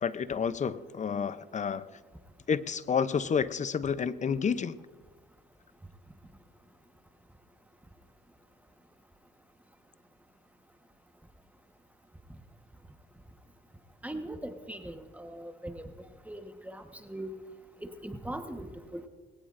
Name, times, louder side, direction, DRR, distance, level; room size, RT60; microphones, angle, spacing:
voice 1, 0.0-1.9 2.5-4.8, left 6 dB, 35° left, 15 dB, 0.6 m, -30 dB
voice 2, 14.0-15.9 16.3-17.3 17.8-19.1, right 1 dB, 5° right, 6 dB, 1.2 m, -40 dB
21.0 x 17.5 x 2.6 m, 1.4 s
cardioid pair, 90°, 20 cm